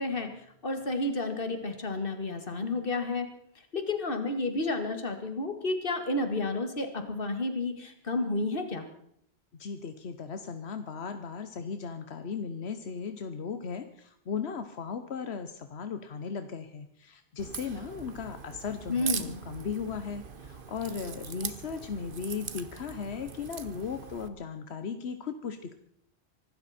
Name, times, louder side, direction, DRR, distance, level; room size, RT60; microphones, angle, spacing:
voice 1, 0.0-8.9 18.9-19.4, left 2 dB, 60° left, 7 dB, 2.2 m, -31 dB
voice 2, 9.5-25.7, left 6 dB, 90° left, 9 dB, 1.2 m, -37 dB
Crack, 17.4-24.3, right 6 dB, 55° right, 1.2 m, -41 dB
24.5 x 13.0 x 4.3 m, 0.69 s
omnidirectional pair, 1.1 m